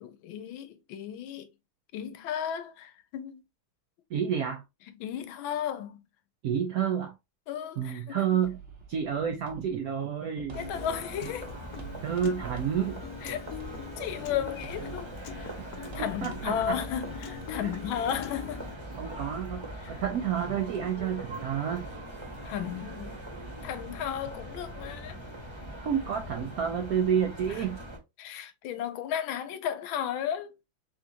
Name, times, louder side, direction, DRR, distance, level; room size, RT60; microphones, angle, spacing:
voice 1, 0.0-1.5 1.9-3.4 5.0-6.0 7.5-8.2 10.4-11.5 13.2-13.5 14.0-15.5 15.9-18.6 19.8-20.0 22.4-23.2 23.6-25.2 27.5-27.6 28.2-30.5, left 9 dB, 85° left, 1.4 m, -34 dB
voice 2, 4.1-4.6 6.4-7.1 7.8-8.6 8.9-10.6 11.2-11.3 12.0-13.0 16.0-16.8 17.6-17.7 19.0-21.9 25.8-27.8, right 8 dB, 75° right, 0.8 m, -29 dB
sound 1, 8.4-16.7, right 7 dB, 50° right, 0.9 m, -48 dB
sound 2, 10.5-28.0, right 1 dB, 20° right, 0.8 m, -41 dB
Piano, 10.7-18.7, left 9 dB, 65° left, 1.0 m, -44 dB
3.8 x 3.5 x 2.8 m
omnidirectional pair, 2.2 m